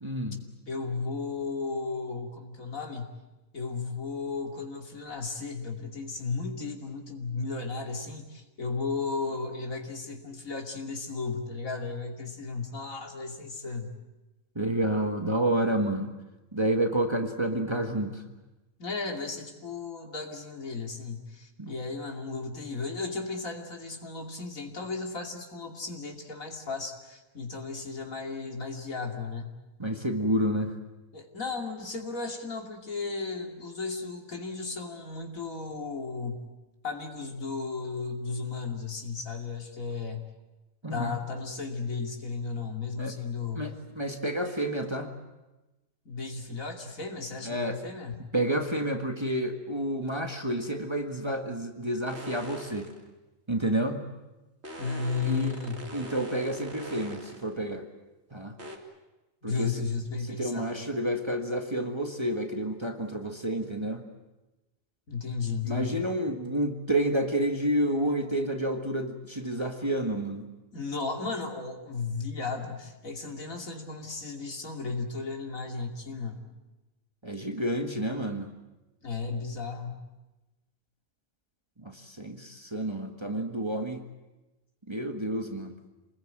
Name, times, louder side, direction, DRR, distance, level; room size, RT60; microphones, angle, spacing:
voice 1, 0.0-0.4 14.6-16.1 16.5-18.2 21.6-21.7 29.8-30.7 40.8-41.2 43.0-43.1 43.6-45.1 47.4-47.8 48.3-52.9 53.5-54.0 55.2-55.6 55.9-57.8 58.3-58.6 59.4-59.7 60.3-64.0 65.6-70.5 77.2-78.5 81.8-84.0 84.9-85.8, right 1 dB, 20° right, 4 dB, 1.7 m, -29 dB
voice 2, 0.7-3.1 3.5-13.9 18.8-29.5 31.1-36.5 36.8-40.2 40.9-43.7 46.0-48.2 54.8-55.8 59.4-60.8 65.1-66.1 70.7-76.4 79.0-80.0, left 4 dB, 85° left, 2 dB, 3.2 m, -35 dB
sound 1, 52.0-53.0 54.6-57.5 58.6-58.8, right 1 dB, 55° right, 2.9 m, -42 dB
28.0 x 20.5 x 9.0 m, 1.1 s
omnidirectional pair, 1.4 m